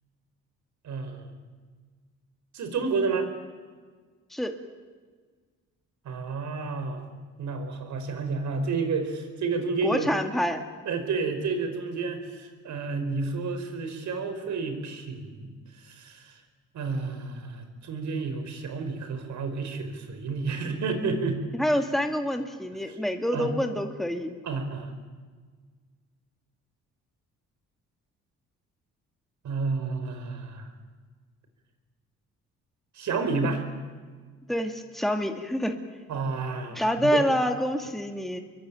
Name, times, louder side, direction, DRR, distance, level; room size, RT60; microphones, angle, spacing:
voice 1, 0.8-1.3 2.5-3.3 6.0-7.0 7.4-10.1 10.8-15.5 15.8-16.4 16.7-21.4 22.9-23.0 23.3-23.5 24.4-24.9 29.4-30.7 32.9-33.6 36.1-37.2, right 4 dB, 70° right, 7 dB, 4.8 m, -30 dB
voice 2, 9.8-10.6 21.5-24.3 34.5-35.8 36.7-38.4, equal, ahead, 5 dB, 2.2 m, -27 dB
26.0 x 23.0 x 9.2 m, 1.5 s
cardioid pair, 90°, 30 cm